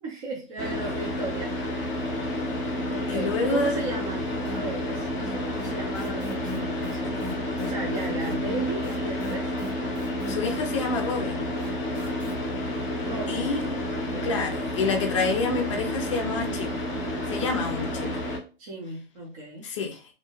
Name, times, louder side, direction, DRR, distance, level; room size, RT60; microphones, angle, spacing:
voice 1, 0.0-1.8 2.9-7.3 7.6-9.5 13.0-13.5 13.8-14.5 18.6-19.7, right 2 dB, 35° right, -4 dB, 0.8 m, -35 dB
Car / Idling, 0.6-18.4, left 1 dB, 10° left, 0.8 m, -30 dB
voice 2, 3.1-3.7 10.3-11.5 13.3-13.7 14.2-16.8 17.3-18.2 19.6-20.0, left 4 dB, 30° left, 4 dB, 0.5 m, -28 dB
sound 1, 4.4-4.9 5.2-12.3, equal, 55° right, 1.1 m, -40 dB
2.7 x 2.2 x 3.0 m, 0.35 s
hypercardioid pair, 150°, 32 cm